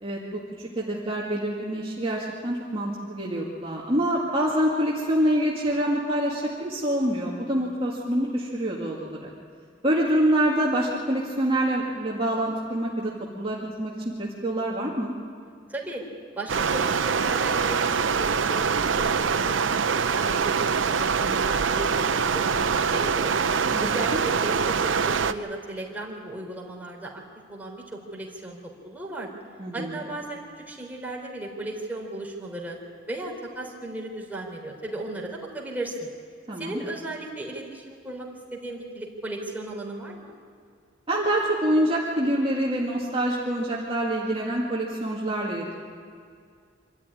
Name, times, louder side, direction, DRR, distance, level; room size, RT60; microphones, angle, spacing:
voice 1, 0.0-9.3 9.8-13.9 14.2-15.1 23.7-24.2 29.6-30.0 36.5-36.8 41.1-45.7, right 1 dB, 30° right, -5 dB, 2.1 m, -26 dB
voice 2, 15.7-16.0 16.3-18.6 18.9-23.3 23.8-27.2 27.5-29.3 29.7-32.8 33.1-36.1 36.6-40.4, right 2 dB, 10° right, -3 dB, 3.8 m, -36 dB
Stream, 16.5-25.3, right 5 dB, 90° right, 0.7 m, -24 dB
25.5 x 13.0 x 9.9 m, 2.2 s
head